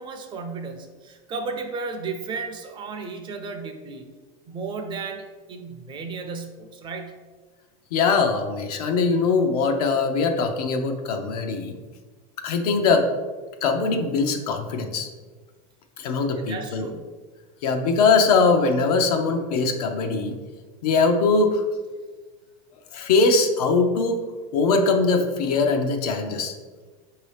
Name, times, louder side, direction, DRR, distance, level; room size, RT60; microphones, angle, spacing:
voice 1, 0.0-4.1 4.5-7.2 16.3-17.0, right 4 dB, 25° right, 5 dB, 0.4 m, -34 dB
voice 2, 7.9-11.7 12.4-13.1 13.6-15.1 16.0-16.9 17.6-20.3 20.8-21.6 22.9-24.2 24.5-26.5, left 4 dB, 90° left, 5 dB, 0.7 m, -21 dB
5.4 x 2.8 x 3.2 m, 1.4 s
supercardioid pair, 145°, 19 cm